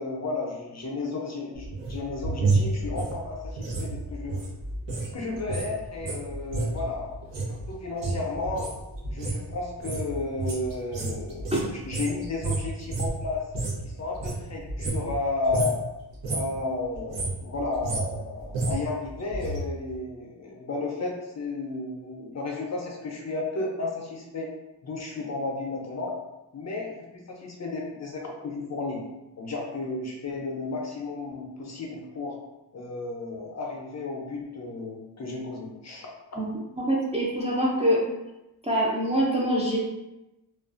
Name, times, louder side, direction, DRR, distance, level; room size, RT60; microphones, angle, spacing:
voice 1, 0.0-4.4 5.1-7.2 7.5-8.7 9.1-13.5 13.8-15.8 16.3-24.5 24.8-26.2 26.5-29.0 29.4-32.4 32.7-36.1, left 3 dB, 40° left, -1 dB, 0.5 m, -33 dB
sound 1, 1.5-5.1 5.4-13.9 14.1-15.2 15.5-15.8 16.1-16.6 16.9-19.6 19.9-20.0, right 3 dB, 90° right, 0.9 m, -30 dB
voice 2, 36.4-38.0 38.6-39.8, equal, 15° right, -4 dB, 0.4 m, -25 dB
2.4 x 2.2 x 2.4 m, 0.98 s
cardioid pair, 90°, 43 cm